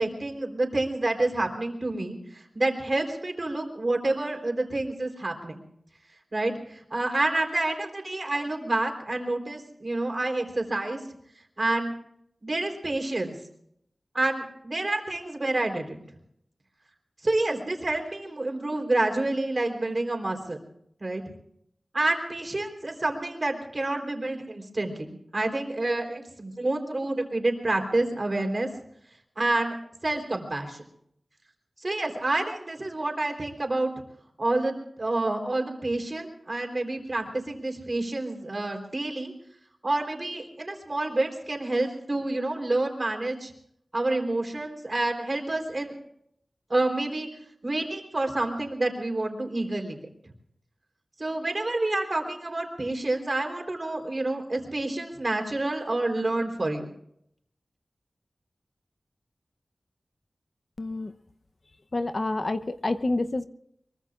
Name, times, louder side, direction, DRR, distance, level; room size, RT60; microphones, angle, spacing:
voice 1, 0.0-5.6 6.3-11.0 11.6-11.9 12.4-13.4 14.1-16.0 17.2-20.6 21.0-21.2 21.9-28.7 29.4-29.8 30.0-30.8 31.8-33.9 34.4-39.3 39.8-43.5 43.9-45.9 46.7-47.3 47.6-50.0 51.2-56.9, right 2 dB, 45° right, 3 dB, 3.7 m, -28 dB
voice 2, 60.8-61.1 61.9-63.5, left 2 dB, 50° left, 10 dB, 0.8 m, -28 dB
23.5 x 23.0 x 2.5 m, 0.71 s
wide cardioid pair, 65°, 0 cm